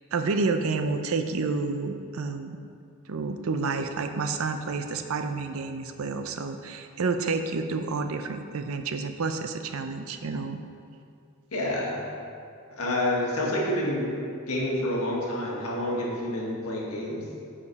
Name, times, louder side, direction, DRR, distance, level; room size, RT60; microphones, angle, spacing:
voice 1, 0.1-2.6 3.1-10.6, right 4 dB, 70° right, 7 dB, 0.5 m, -29 dB
voice 2, 11.5-12.0 12.7-14.1 14.5-17.2, left 1 dB, 80° left, -3 dB, 1.6 m, -28 dB
9.7 x 5.0 x 4.1 m, 2.4 s
head